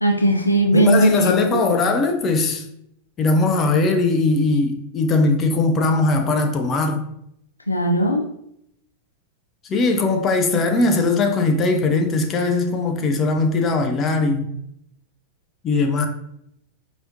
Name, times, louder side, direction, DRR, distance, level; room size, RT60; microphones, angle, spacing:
voice 1, 0.0-1.6 7.7-8.2, right 1 dB, 85° left, 0.4 m, -18 dB
voice 2, 0.7-2.6 3.2-7.0 9.7-14.5 15.6-16.1, left 3 dB, 30° left, 0.6 m, -20 dB
4.7 x 3.1 x 2.6 m
figure-of-eight pair, 90°, 0 cm